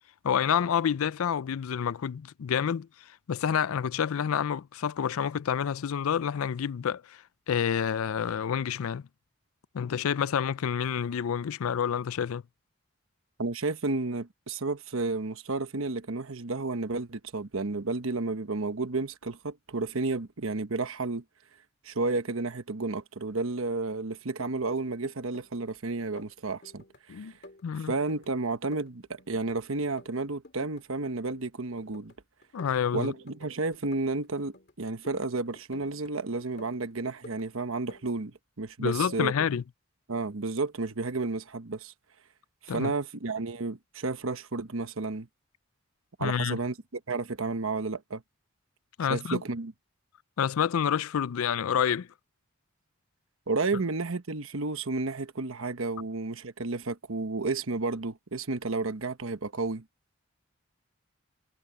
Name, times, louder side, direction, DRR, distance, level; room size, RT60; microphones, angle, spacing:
voice 1, 0.2-9.0 9.7-12.4 27.1-27.3 27.6-27.9 32.5-33.1 38.8-39.6 42.7-42.9 46.2-46.6 49.0-49.4 50.4-52.1, left 8 dB, 85° left, 0.4 m, -28 dB
voice 2, 13.4-21.2 21.8-27.3 27.9-32.1 32.9-39.3 40.1-41.9 42.6-45.3 46.2-48.2 49.1-49.7 53.5-59.8, right 3 dB, 75° right, 1.1 m, -32 dB
sound 1, 24.2-25.7 26.0-27.0 27.3-29.6 29.8-30.8 31.1-32.2 32.4-34.7 35.0-36.1 36.4-37.5 37.7-38.1, left 1 dB, 50° left, 2.7 m, -52 dB
head